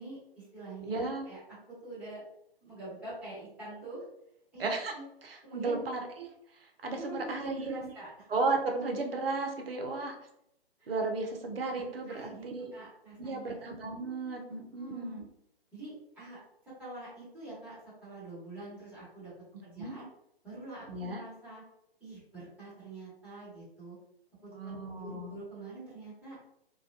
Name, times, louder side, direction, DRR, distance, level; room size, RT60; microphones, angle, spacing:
voice 1, 0.0-1.4 1.8-2.2 2.6-4.0 4.5-5.0 5.5-5.8 6.9-8.3 10.8-10.9 11.7-13.6 14.8-15.2 15.7-16.4 16.8-19.3 19.6-20.1 20.4-21.6 22.0-24.0 24.4-26.4, right 2 dB, 5° right, -12 dB, 1.1 m, -45 dB
voice 2, 0.9-1.3 4.6-4.9 5.2-6.3 6.8-7.9 8.3-10.1 10.9-12.7 13.2-15.3 19.8-20.0 20.9-21.2 24.5-25.3, right 3 dB, 65° right, 3 dB, 0.6 m, -34 dB
2.3 x 2.2 x 2.5 m, 0.77 s
figure-of-eight pair, 130°, 31 cm